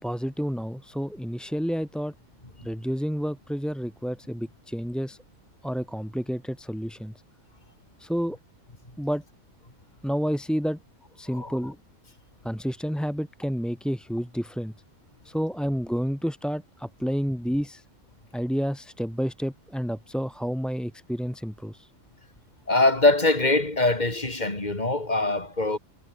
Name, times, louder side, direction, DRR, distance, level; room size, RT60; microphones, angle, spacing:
voice 1, 0.0-2.1 2.6-5.2 5.6-7.1 8.0-8.4 9.0-9.2 10.0-10.8 11.2-11.8 12.4-14.7 15.2-17.8 18.3-21.9, equal, ahead, 5.3 m, -30 dB
voice 2, 22.7-25.8, left 2 dB, 30° left, 4.0 m, -23 dB
omnidirectional pair, 1.4 m